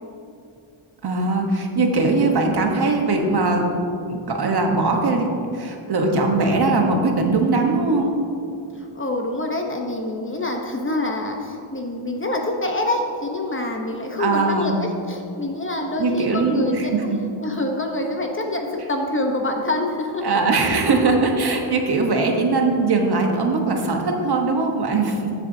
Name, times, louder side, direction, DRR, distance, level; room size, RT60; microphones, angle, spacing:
voice 1, 1.0-3.6 4.1-5.3 5.5-8.2 14.2-14.8 16.0-17.2 20.2-25.3, right 3 dB, 50° right, 2 dB, 1.2 m, -20 dB
voice 2, 8.7-17.1 17.4-20.4, left 2 dB, 25° left, 1 dB, 0.8 m, -26 dB
14.5 x 7.2 x 2.7 m, 2.6 s
wide cardioid pair, 115°, 50 cm